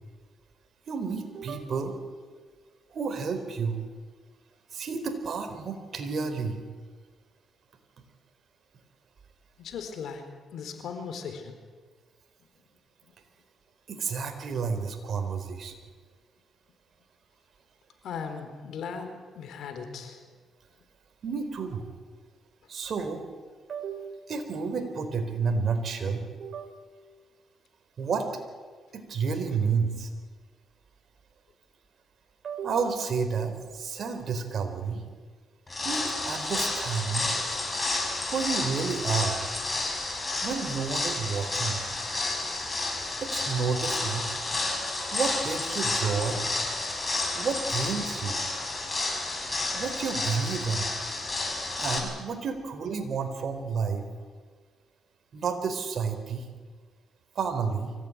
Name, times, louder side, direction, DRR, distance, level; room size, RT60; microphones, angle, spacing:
voice 1, 0.9-1.9 2.9-3.8 4.7-6.7 13.9-15.7 21.2-21.9 22.7-23.2 23.7-26.7 28.0-28.3 28.9-30.1 32.4-35.0 35.8-37.3 38.2-39.5 40.4-41.8 43.2-44.3 45.0-46.4 47.3-48.4 49.7-50.9 51.8-54.0 55.3-56.4 57.3-57.9, right 5 dB, 60° right, 6 dB, 4.1 m, -30 dB
voice 2, 9.6-10.2 10.5-11.6 18.0-20.2 39.8-39.9, left 6 dB, 75° left, 6 dB, 4.2 m, -38 dB
sound 1, 35.7-52.0, left 2 dB, 25° left, 6.7 m, -31 dB
24.5 x 16.0 x 9.9 m, 1.5 s
cardioid pair, 75°, 0 cm